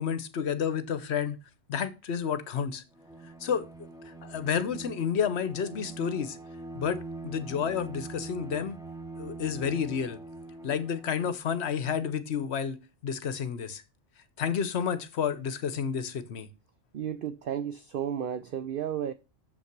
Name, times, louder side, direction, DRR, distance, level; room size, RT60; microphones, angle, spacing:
voice 1, 0.0-1.4 1.7-2.8 3.4-3.7 4.0-6.4 6.7-8.8 9.2-10.2 10.6-12.8 13.0-13.8 14.4-16.5, left 7 dB, 60° left, 1.0 m, -30 dB
Bowed string instrument, 2.9-11.4, right 3 dB, 5° right, 1.0 m, -43 dB
voice 2, 16.9-19.1, right 9 dB, 55° right, 0.6 m, -33 dB
7.1 x 5.7 x 5.9 m
omnidirectional pair, 1.3 m